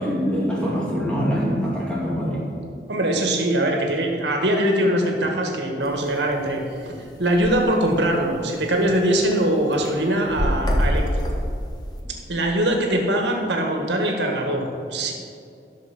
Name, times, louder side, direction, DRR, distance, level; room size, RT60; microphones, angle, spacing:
voice 1, 0.0-2.4, equal, 5° left, -6 dB, 2.4 m, -24 dB
voice 2, 2.9-11.2 12.3-15.1, right 1 dB, 85° right, 2 dB, 1.6 m, -22 dB
sound 1, 5.8-6.1 6.5-6.6 6.8-6.9 7.2-7.6 8.2-8.3 8.6-9.4 9.7-12.0, equal, 25° left, 1.1 m, -24 dB
12.0 x 6.5 x 6.0 m, 2.5 s
head